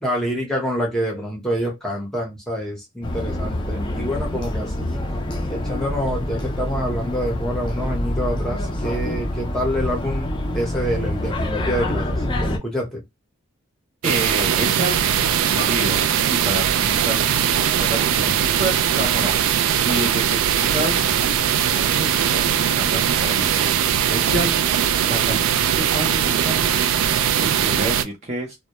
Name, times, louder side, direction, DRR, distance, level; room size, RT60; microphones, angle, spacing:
voice 1, 0.0-5.0 5.5-13.0, equal, ahead, 0.7 m, -27 dB
sound 1, 3.0-12.6, left 1 dB, 20° left, 0.3 m, -26 dB
voice 2, 14.0-16.0 16.3-21.1 21.5-24.7 25.0-26.8 27.3-28.6, right 1 dB, 30° right, 0.5 m, -29 dB
sound 2, 14.0-28.0, right 9 dB, 90° right, 0.3 m, -20 dB
2.2 x 2.0 x 2.8 m
head